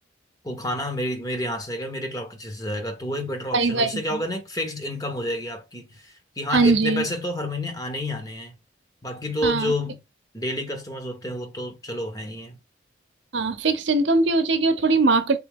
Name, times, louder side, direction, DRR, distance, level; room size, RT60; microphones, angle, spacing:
voice 1, 0.4-8.5 9.0-10.0 10.3-12.6, left 1 dB, 20° left, 0.7 m, -29 dB
voice 2, 3.5-4.2 6.5-7.0 9.4-9.7 13.3-15.4, right 3 dB, 70° right, 0.7 m, -21 dB
3.8 x 3.5 x 3.5 m
head